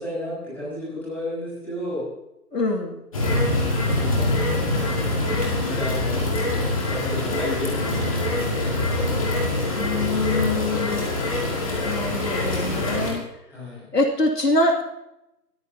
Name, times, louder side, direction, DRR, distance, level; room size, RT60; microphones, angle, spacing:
voice 1, 0.0-2.1 4.0-4.3 4.7-5.1 5.4-6.2 6.8-8.4 13.5-13.9, left 1 dB, 5° left, -10 dB, 5.1 m, -33 dB
voice 2, 2.5-3.0 9.7-11.1 11.8-13.2 13.9-14.8, left 2 dB, 75° left, 1 dB, 2.7 m, -24 dB
sound 1, 3.1-13.1, left 2 dB, 20° left, 2.4 m, -24 dB
20.5 x 14.5 x 2.9 m, 0.89 s
figure-of-eight pair, 160°, 49 cm